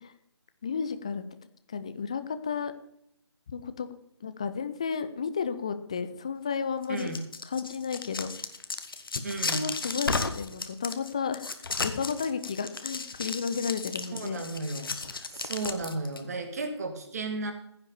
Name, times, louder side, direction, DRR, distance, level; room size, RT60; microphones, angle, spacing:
voice 1, 0.6-1.2 1.7-2.7 3.5-3.9 4.2-7.1 7.5-8.3 9.5-11.4 11.8-14.4, left 6 dB, 15° left, 10 dB, 0.4 m, -32 dB
sound 1, 6.8-16.2, left 4 dB, 50° left, 1.3 m, -34 dB
voice 2, 6.9-7.2 9.2-9.7 14.1-15.0 15.3-17.5, right 3 dB, 35° right, 6 dB, 2.0 m, -34 dB
15.5 x 5.8 x 6.9 m, 0.72 s
figure-of-eight pair, 150°, 15 cm